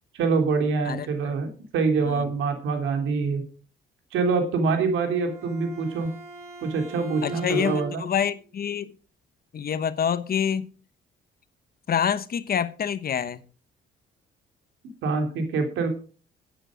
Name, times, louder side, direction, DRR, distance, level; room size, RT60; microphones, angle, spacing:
voice 1, 0.1-1.5 1.7-3.4 4.1-6.1 6.6-8.0 15.0-15.9, right 4 dB, 85° right, 3.2 m, -25 dB
Bowed string instrument, 4.9-8.3, right 2 dB, 15° right, 7.7 m, -40 dB
voice 2, 7.2-8.9 9.5-10.7 11.9-13.4, left 8 dB, 50° left, 1.0 m, -26 dB
11.0 x 9.4 x 5.1 m
cardioid pair, 90°, 20 cm